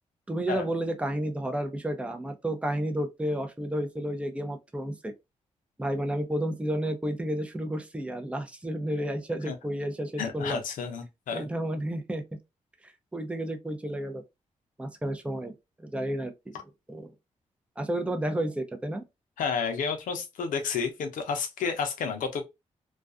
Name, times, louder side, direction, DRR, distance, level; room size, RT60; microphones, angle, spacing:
voice 1, 0.3-5.1 5.8-10.6 11.3-12.2 12.8-14.2 14.8-15.5 15.8-16.5 16.9-17.1 17.8-19.0, right 1 dB, 10° right, 0.6 m, -31 dB
voice 2, 10.2-11.5 19.4-22.4, left 6 dB, 85° left, 0.6 m, -31 dB
2.4 x 2.3 x 2.4 m
cardioid pair, 55°, 13 cm